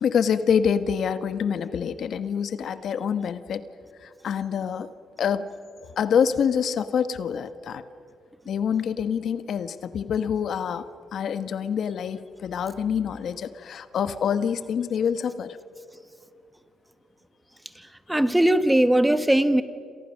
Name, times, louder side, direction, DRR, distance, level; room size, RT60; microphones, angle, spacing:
voice 1, 0.0-3.6 4.0-4.9 5.2-5.5 5.8-7.8 8.5-10.9 11.1-15.6, left 7 dB, 65° left, 12 dB, 1.1 m, -26 dB
voice 2, 18.1-19.6, right 1 dB, 5° right, 12 dB, 1.2 m, -19 dB
28.5 x 26.5 x 6.4 m, 2.4 s
cardioid pair, 90°, 0 cm